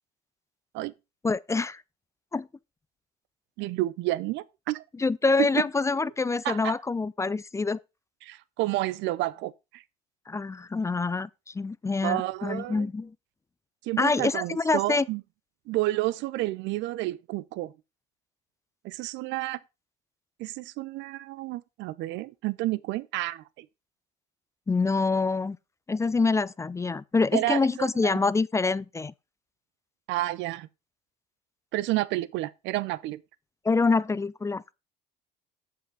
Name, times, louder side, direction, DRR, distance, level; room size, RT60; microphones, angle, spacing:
voice 1, 1.2-1.8 2.3-2.5 5.0-7.8 10.3-11.3 11.5-13.1 14.0-15.1 24.7-25.6 25.9-29.1 33.6-34.6, left 4 dB, 15° left, 0.4 m, -26 dB
voice 2, 3.6-4.8 5.4-5.5 6.4-6.7 8.2-9.8 12.0-12.9 13.8-15.2 15.7-17.7 18.8-19.6 20.4-23.7 27.3-28.2 30.1-30.7 31.7-33.2, right 17 dB, 65° right, 0.6 m, -30 dB
7.6 x 5.8 x 5.3 m
hypercardioid pair, 75°, 20 cm